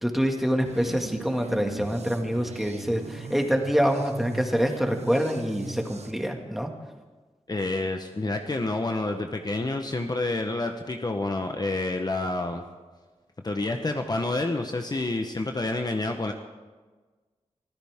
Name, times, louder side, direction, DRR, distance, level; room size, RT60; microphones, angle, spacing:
voice 1, 0.0-6.7, equal, ahead, 2 dB, 2.0 m, -26 dB
sound 1, 0.6-6.1, right 4 dB, 70° right, 1.1 m, -40 dB
voice 2, 7.5-12.6 13.4-16.3, left 2 dB, 35° left, 4 dB, 1.0 m, -28 dB
24.5 x 14.5 x 3.7 m, 1.3 s
wide cardioid pair, 85°, 12 cm